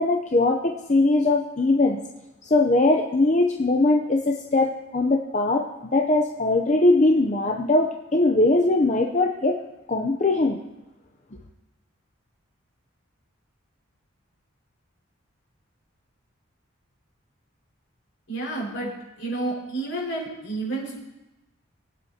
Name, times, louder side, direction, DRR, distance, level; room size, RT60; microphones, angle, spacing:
voice 1, 0.0-2.0 2.4-9.6 9.9-10.6, left 2 dB, 35° left, 2 dB, 0.6 m, -21 dB
voice 2, 18.3-21.0, right 2 dB, 65° left, -4 dB, 5.1 m, -30 dB
23.0 x 9.3 x 2.9 m, 1.0 s
head